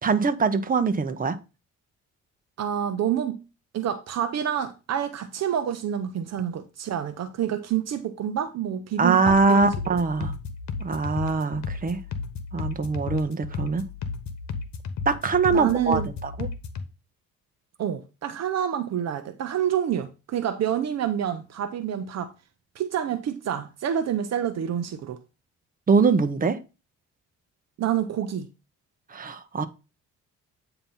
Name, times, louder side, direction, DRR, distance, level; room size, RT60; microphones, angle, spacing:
voice 1, 0.0-1.4 9.0-10.3 10.8-12.0 12.5-13.9 15.1-16.5 25.9-26.6 29.1-29.7, right 4 dB, 30° right, 0.9 m, -23 dB
voice 2, 2.6-3.4 3.7-10.0 15.5-16.1 17.8-22.3 22.8-25.2 27.8-28.5, right 9 dB, 60° right, 0.7 m, -28 dB
sound 1, 9.2-16.9, left 5 dB, 65° left, 1.1 m, -34 dB
8.6 x 3.0 x 5.4 m
cardioid pair, 90°, 30 cm